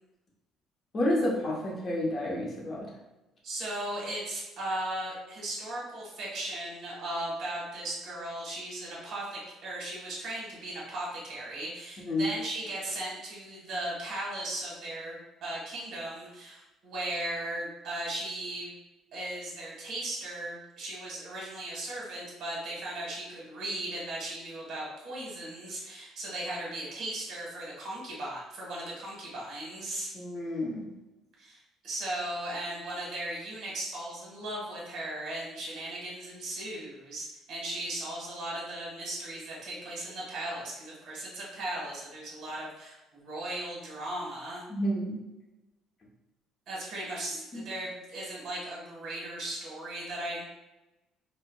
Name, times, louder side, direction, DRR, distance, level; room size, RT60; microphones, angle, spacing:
voice 1, 0.9-2.9 12.1-12.3 30.1-30.9 44.7-45.2 47.5-47.6, left 1 dB, 30° left, -3 dB, 0.8 m, -30 dB
voice 2, 3.4-18.7 19.1-30.1 31.4-44.6 46.7-50.4, right 1 dB, 50° right, -4 dB, 1.3 m, -37 dB
4.5 x 2.1 x 2.2 m, 1.0 s
cardioid pair, 155°, 0 cm